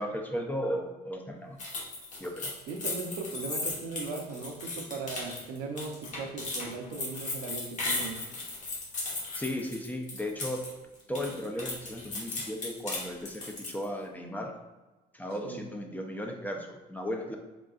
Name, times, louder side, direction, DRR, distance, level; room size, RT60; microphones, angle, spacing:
voice 1, 0.0-1.6 2.2-2.6 9.3-10.6 11.1-14.5 15.1-17.4, equal, 10° left, 2 dB, 0.5 m, -35 dB
sound 1, 1.6-10.7 11.0-13.8, left 2 dB, 45° left, 1.1 m, -36 dB
voice 2, 2.7-8.2 15.4-15.6, right 4 dB, 85° right, 3 dB, 0.6 m, -38 dB
3.8 x 3.7 x 2.4 m, 1.2 s
cardioid pair, 110°, 17 cm